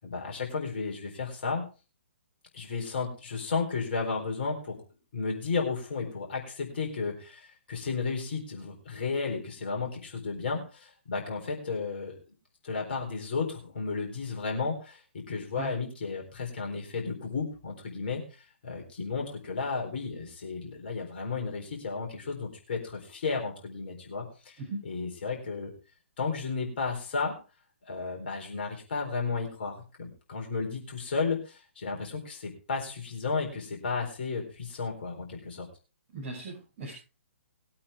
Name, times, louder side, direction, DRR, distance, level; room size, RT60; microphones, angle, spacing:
voice 1, 0.0-1.7 2.5-4.8 5.1-12.1 12.6-25.7 26.2-27.3 27.8-35.7, left 4 dB, 45° left, 1 dB, 4.1 m, -33 dB
voice 2, 36.1-36.9, right 2 dB, 30° right, -4 dB, 6.2 m, -38 dB
20.5 x 8.6 x 3.5 m, 0.32 s
figure-of-eight pair, 125°, 7 cm